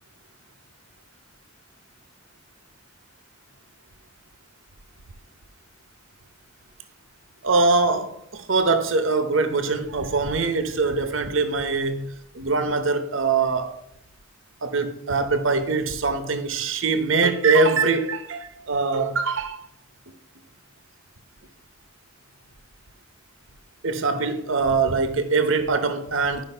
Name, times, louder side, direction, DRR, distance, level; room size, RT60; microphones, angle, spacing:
voice 1, 7.4-13.8 14.6-19.6 23.8-26.4, right 4 dB, 75° right, 0.9 m, -23 dB
11.5 x 5.2 x 5.5 m
head